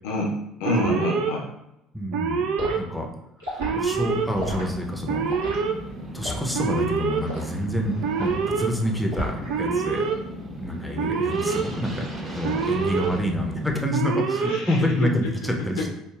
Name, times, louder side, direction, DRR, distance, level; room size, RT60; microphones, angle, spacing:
voice 1, 0.0-1.5 14.4-15.3 15.8-15.9, left 2 dB, 65° left, -2 dB, 0.5 m, -27 dB
Alarm, 0.6-1.3 2.1-2.8 3.6-4.3 5.1-5.7 6.5-7.2 8.0-8.7 9.5-10.1 11.0-11.6 12.4-13.1 13.9-14.6, right 6 dB, 60° right, 0.3 m, -25 dB
voice 2, 1.9-2.5 2.7-3.1 3.5-5.2 5.6-5.7 6.1-10.1 10.6-15.9, equal, 5° left, 1 dB, 0.7 m, -28 dB
Liquid, 2.6-2.8 3.4-3.7 4.4-4.7 5.3-5.6 6.2-6.5 7.2-7.5 8.2-8.4 9.1-9.5 9.9-10.2, equal, 75° right, 1.3 m, -33 dB
sound 1, 3.9-13.8, equal, 25° right, 1.0 m, -36 dB
5.2 x 2.2 x 2.4 m, 0.88 s
figure-of-eight pair, 55°, 0 cm